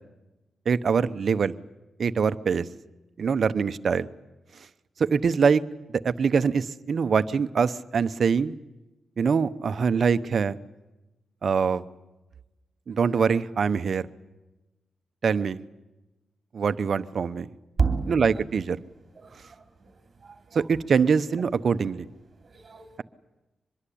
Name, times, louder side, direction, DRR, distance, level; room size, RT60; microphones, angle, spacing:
voice 1, 0.7-1.5 2.0-2.7 3.2-4.1 5.1-5.6 6.0-8.6 9.2-10.6 11.4-11.8 12.9-14.1 15.2-15.6 16.5-17.5 18.1-18.8 20.5-22.1, right 6 dB, 55° right, 13 dB, 0.9 m, -24 dB
voice 2, 17.8-18.3 19.1-19.9 20.2-20.6 22.4-22.9, right 4 dB, 35° right, 7 dB, 3.1 m, -30 dB
25.0 x 21.5 x 8.6 m, 1.0 s
wide cardioid pair, 120°, 0 cm